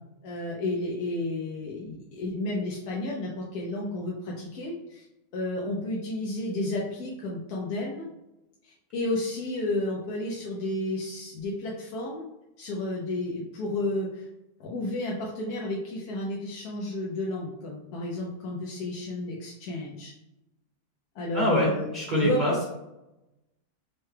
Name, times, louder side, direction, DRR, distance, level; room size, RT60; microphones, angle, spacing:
voice 1, 0.2-5.0 5.3-8.0 8.6-12.2 12.6-14.3 14.6-20.1 21.1-21.9 22.2-22.4, left 2 dB, 70° left, -3 dB, 1.1 m, -32 dB
voice 2, 21.3-22.7, equal, 35° right, -5 dB, 0.8 m, -25 dB
5.6 x 2.1 x 3.2 m, 0.94 s
omnidirectional pair, 1.8 m